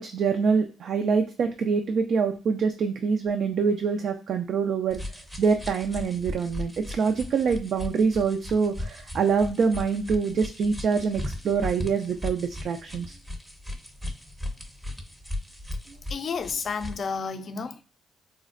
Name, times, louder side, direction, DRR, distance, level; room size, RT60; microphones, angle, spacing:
voice 1, 0.0-5.0 5.4-13.1, right 5 dB, 60° right, 0.3 m, -25 dB
sound 1, 4.9-17.1, left 1 dB, 10° right, 0.6 m, -37 dB
voice 2, 16.1-17.8, left 5 dB, 50° left, 0.4 m, -31 dB
4.0 x 2.0 x 2.4 m
cardioid pair, 90°, 0 cm